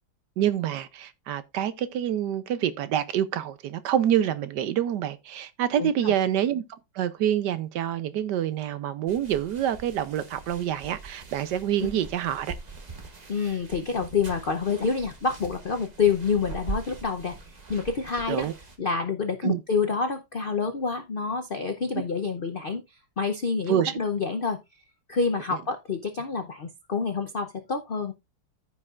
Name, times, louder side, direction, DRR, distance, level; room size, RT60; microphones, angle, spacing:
voice 1, 0.4-6.6 6.9-12.5 18.3-18.5 19.4-19.6 21.9-22.0 23.7-23.9, right 10 dB, 70° right, 1.2 m, -27 dB
voice 2, 5.8-6.1 11.8-11.9 13.3-17.4 17.7-18.5 18.8-24.6 25.1-28.1, left 5 dB, 85° left, 0.4 m, -28 dB
sound 1, 9.1-18.8, right 3 dB, 25° right, 1.0 m, -42 dB
14.5 x 5.4 x 2.4 m
omnidirectional pair, 2.1 m